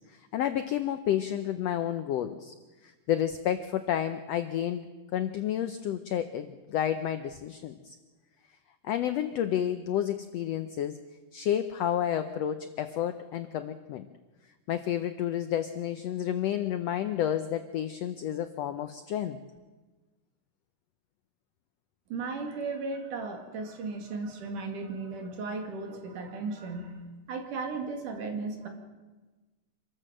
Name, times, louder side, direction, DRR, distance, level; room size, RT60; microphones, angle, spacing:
voice 1, 0.1-2.5 2.8-8.0 8.8-11.0 11.3-14.1 14.7-19.4, left 10 dB, 80° left, 10 dB, 1.4 m, -30 dB
voice 2, 22.1-27.0 27.3-28.7, right 3 dB, 75° right, 4 dB, 3.8 m, -35 dB
26.0 x 13.5 x 7.6 m, 1.3 s
omnidirectional pair, 3.8 m